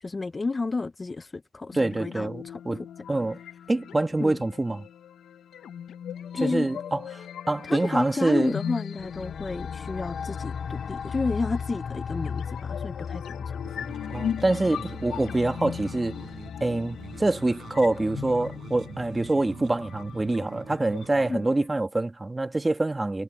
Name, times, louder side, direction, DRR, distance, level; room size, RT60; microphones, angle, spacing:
voice 1, 0.0-2.6 4.2-4.4 6.3-6.7 7.6-13.6 21.3-21.4, left 3 dB, 25° left, 0.8 m, -31 dB
sound 1, 1.7-21.7, left 9 dB, 65° left, 1.0 m, -39 dB
voice 2, 1.7-3.4 3.7-4.9 6.4-8.5 14.1-16.2 16.6-23.2, right 2 dB, 15° right, 1.6 m, -26 dB
sound 2, 9.0-20.3, left 6 dB, 50° left, 2.1 m, -37 dB
sound 3, 13.6-21.3, right 7 dB, 50° right, 7.2 m, -45 dB
cardioid pair, 90°, 0 cm